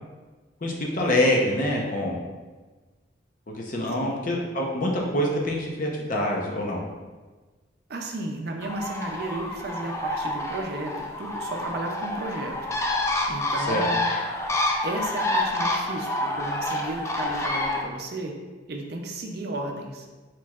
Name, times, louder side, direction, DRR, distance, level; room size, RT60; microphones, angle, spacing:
voice 1, 0.6-2.2 3.5-6.8 13.6-13.8, left 1 dB, 45° left, -1 dB, 0.7 m, -25 dB
voice 2, 7.9-12.6 13.3-14.0 14.8-18.4 18.7-20.1, right 2 dB, 55° right, 2 dB, 0.5 m, -33 dB
Bird, 8.6-17.8, left 1 dB, 15° left, 0.3 m, -28 dB
4.5 x 4.5 x 2.4 m, 1.3 s
head